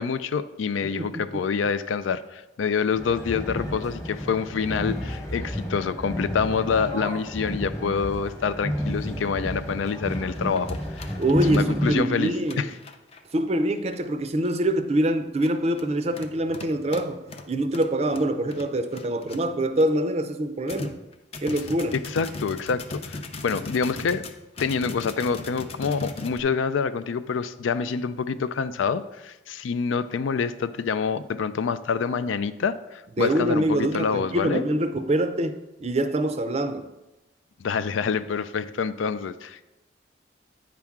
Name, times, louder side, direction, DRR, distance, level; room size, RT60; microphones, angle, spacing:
voice 1, 0.0-10.8 11.5-12.7 22.1-23.2 23.4-24.2 24.6-34.6 37.6-39.6, left 5 dB, 85° left, 13 dB, 0.4 m, -27 dB
voice 2, 0.8-1.4 11.2-12.7 13.3-17.2 17.5-20.9 21.4-22.0 33.2-36.8, right 1 dB, 35° right, 9 dB, 0.5 m, -25 dB
sound 1, 2.9-11.9, equal, 15° left, 1.0 m, -31 dB
sound 2, 9.5-9.8 10.1-13.3 13.9-14.0 14.4-14.7 15.2-19.9 20.2-20.3 20.7-26.4, left 3 dB, 30° left, 0.5 m, -39 dB
8.8 x 5.8 x 3.6 m, 1.0 s
head